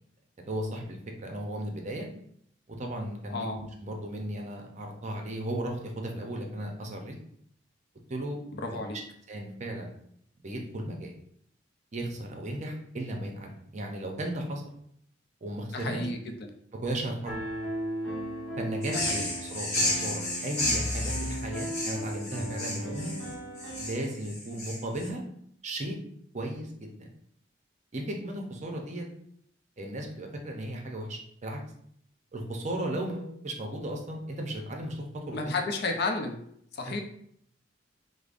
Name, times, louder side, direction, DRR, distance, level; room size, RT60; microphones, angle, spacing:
voice 1, 0.5-2.1 2.7-7.2 8.1-8.4 8.7-8.8 9.3-9.9 10.4-11.1 11.9-14.6 15.4-16.0 16.8-17.4 18.6-23.1 23.8-25.2 25.6-26.0 26.3-26.9 27.9-29.0 29.8-31.6 32.3-35.6, right 1 dB, 40° right, 2 dB, 0.6 m, -35 dB
voice 2, 3.3-3.6 8.5-9.0 15.7-16.5 18.9-19.3 35.3-36.4 36.7-37.0, left 3 dB, 60° left, 4 dB, 0.5 m, -32 dB
Piano, 17.2-24.1, right 1 dB, ahead, 0.9 m, -36 dB
sound 1, 18.8-25.1, left 1 dB, 40° left, 1.1 m, -32 dB
4.9 x 2.0 x 2.5 m, 0.69 s
head